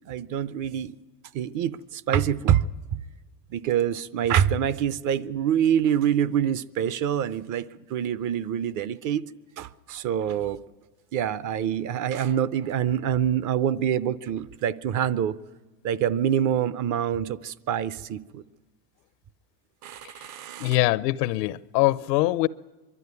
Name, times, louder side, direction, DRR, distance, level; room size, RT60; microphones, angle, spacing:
voice 1, 0.1-0.9 1.3-2.6 3.5-9.2 9.6-10.6 11.1-15.4 15.8-18.4 19.8-20.8, right 9 dB, 40° right, 0.7 m, -26 dB
voice 2, 20.6-22.5, left 18 dB, 75° left, 0.8 m, -23 dB
23.5 x 12.0 x 9.6 m
supercardioid pair, 120°, 49 cm